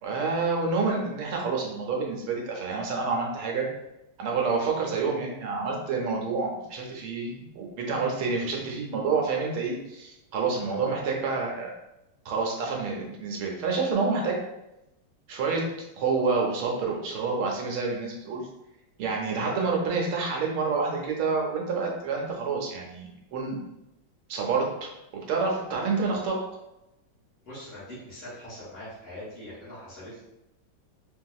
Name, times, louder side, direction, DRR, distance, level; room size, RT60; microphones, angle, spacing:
voice 1, 0.0-3.7 4.2-11.7 12.2-14.4 15.3-15.6 16.0-18.5 19.0-23.6 24.3-26.4, right 4 dB, 90° right, 0 dB, 1.6 m, -28 dB
voice 2, 27.4-30.2, left 1 dB, 35° left, -12 dB, 1.2 m, -42 dB
3.6 x 2.7 x 2.3 m, 0.91 s
omnidirectional pair, 2.2 m